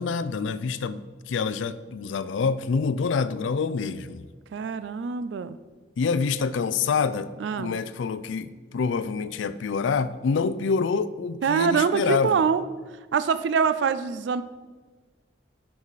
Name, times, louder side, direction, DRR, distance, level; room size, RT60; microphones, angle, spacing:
voice 1, 0.0-4.3 6.0-7.3 7.6-12.4, left 5 dB, 85° left, 14 dB, 0.4 m, -26 dB
voice 2, 4.5-5.6 7.4-7.7 11.4-12.6 13.1-14.4, right 6 dB, 70° right, 13 dB, 0.3 m, -24 dB
10.5 x 4.8 x 4.0 m, 1.4 s
head